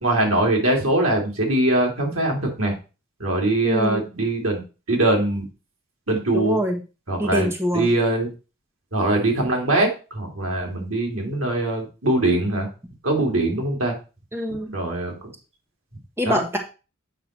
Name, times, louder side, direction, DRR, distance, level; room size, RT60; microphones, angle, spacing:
voice 1, 0.0-2.7 3.2-4.6 4.9-5.4 6.1-6.6 7.1-8.3 8.9-12.7 13.0-13.9 14.7-15.1 16.2-16.4, right 1 dB, 85° right, 0 dB, 2.8 m, -22 dB
voice 2, 3.6-4.1 6.3-6.8 7.2-7.9 14.3-14.7 16.2-16.6, equal, 10° right, 3 dB, 1.0 m, -24 dB
8.0 x 5.7 x 4.3 m, 0.32 s
head